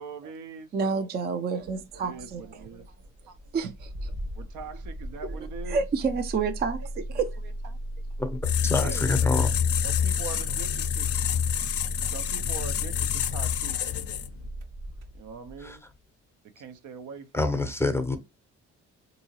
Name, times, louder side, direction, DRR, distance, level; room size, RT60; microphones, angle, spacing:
voice 1, 0.0-1.1 2.0-2.9 3.3-3.4 4.3-5.8 8.7-9.5 9.8-11.1 12.1-14.1 15.1-15.8 16.6-17.5, right 5 dB, 80° right, 0.7 m, -42 dB
voice 2, 0.7-2.4 3.5-4.1 5.7-6.8 7.1-7.3, right 5 dB, 35° right, 0.4 m, -28 dB
Engine starting, 1.6-15.7, right 1 dB, 55° right, 1.0 m, -38 dB
voice 3, 8.2-9.5 15.6-15.8 17.3-18.2, left 2 dB, 10° left, 0.6 m, -27 dB
sound 1, 8.4-14.5, left 9 dB, 50° left, 0.4 m, -27 dB
3.7 x 2.7 x 2.8 m
cardioid pair, 90°, 30 cm